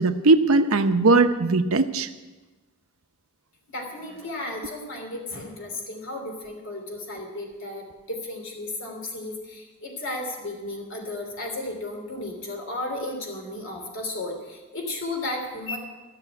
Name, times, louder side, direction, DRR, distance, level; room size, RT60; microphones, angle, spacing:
voice 1, 0.0-2.1, right 3 dB, 75° right, 8 dB, 0.8 m, -19 dB
voice 2, 3.7-15.8, left 2 dB, 65° left, 1 dB, 3.2 m, -34 dB
15.0 x 6.8 x 9.2 m, 1.2 s
head